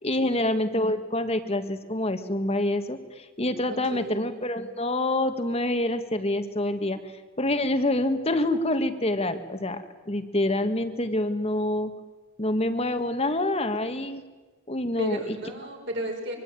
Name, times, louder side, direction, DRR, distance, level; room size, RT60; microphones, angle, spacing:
voice 1, 0.0-7.0 7.4-11.9 12.4-14.2 14.7-15.4, left 1 dB, 25° left, 8 dB, 1.8 m, -26 dB
voice 2, 3.7-4.2 15.0-16.4, right 1 dB, 50° right, 1 dB, 6.0 m, -34 dB
24.5 x 24.0 x 9.2 m, 1.2 s
head